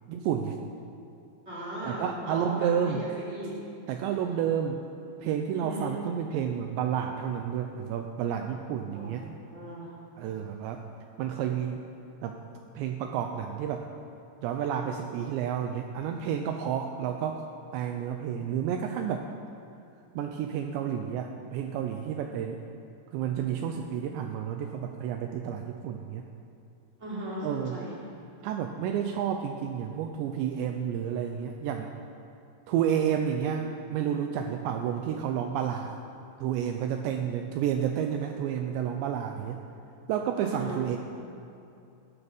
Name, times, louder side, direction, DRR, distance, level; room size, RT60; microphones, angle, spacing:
voice 1, 0.1-0.6 1.8-3.0 3.9-4.8 5.2-9.3 10.2-10.8 11.2-11.8 12.2-12.4 12.8-13.8 14.4-17.4 17.7-19.3 20.1-22.6 23.1-26.2 27.4-27.8 28.4-31.9 32.7-35.9 36.4-39.6 40.1-41.0, right 8 dB, 80° right, 4 dB, 2.8 m, -30 dB
voice 2, 1.5-3.6 5.5-6.0 8.9-9.9 27.0-27.9 40.4-40.8, right 1 dB, 15° right, -7 dB, 3.8 m, -37 dB
18.0 x 12.5 x 5.3 m, 2.7 s
omnidirectional pair, 5.4 m